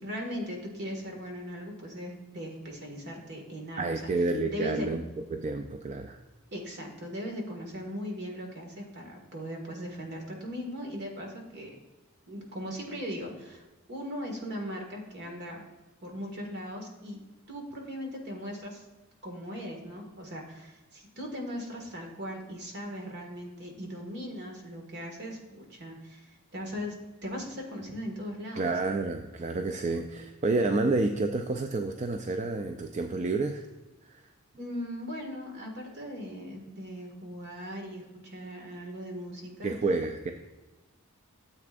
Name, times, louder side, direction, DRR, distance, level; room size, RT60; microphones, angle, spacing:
voice 1, 0.0-3.9 4.5-4.9 6.5-11.7 12.3-13.6 13.9-15.6 16.0-17.2 17.5-18.8 19.2-26.3 26.5-28.7 34.6-39.7, equal, 50° right, 1 dB, 1.8 m, -39 dB
voice 2, 3.8-5.0 5.3-6.2 28.6-33.7 34.1-34.2 39.6-40.3, right 3 dB, 35° right, 6 dB, 0.4 m, -29 dB
13.0 x 7.7 x 2.5 m, 1.1 s
head